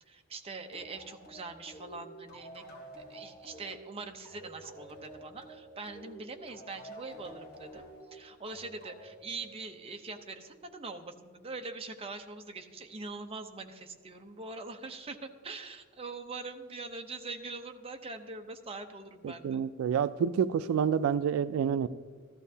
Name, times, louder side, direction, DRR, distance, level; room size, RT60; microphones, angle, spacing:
voice 1, 0.1-2.7 3.1-7.8 8.1-19.6, right 3 dB, 30° right, 5 dB, 0.7 m, -43 dB
sound 1, 0.7-10.0, right 1 dB, 45° left, 2.7 m, -50 dB
voice 2, 19.2-21.9, right 7 dB, 85° right, 14 dB, 0.3 m, -28 dB
14.5 x 13.0 x 2.8 m, 1.5 s
head